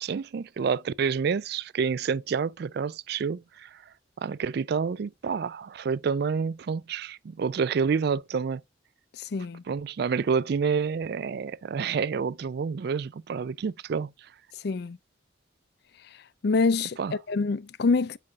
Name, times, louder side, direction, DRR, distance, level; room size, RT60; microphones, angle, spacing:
voice 1, 0.0-3.8 4.2-8.6 9.7-14.1 17.0-17.1, right 6 dB, 55° right, 0.3 m, -28 dB
voice 2, 9.3-9.6 14.6-15.0 16.4-17.0 17.3-18.2, left 4 dB, 55° left, 0.4 m, -25 dB
7.7 x 5.8 x 3.5 m
head